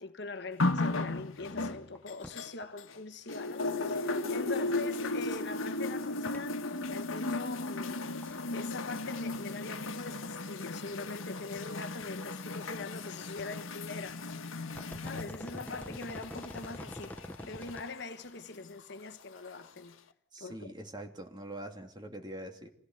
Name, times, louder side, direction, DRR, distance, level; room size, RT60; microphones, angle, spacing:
voice 1, 0.0-6.6 6.9-8.1 8.5-14.2 15.0-20.0 20.4-20.7, left 3 dB, 55° left, 1.4 m, -43 dB
sound 1, 0.6-3.0 3.3-18.0 18.9-19.0, left 2 dB, 75° left, 1.5 m, -36 dB
sound 2, 1.4-1.5 1.8-2.0 2.2-2.3 2.6-2.7 5.0-5.1 6.2-6.4 8.0-8.4 8.6-9.4 9.7-9.8 10.7-10.8 11.2-11.3 11.6-11.7 12.0-12.4 13.4-13.6 14.1-14.3 14.6-17.9 18.2-18.3, left 1 dB, 10° left, 1.2 m, -45 dB
voice 2, 20.3-22.7, right 1 dB, 20° right, 2.8 m, -43 dB
26.5 x 17.0 x 8.0 m
head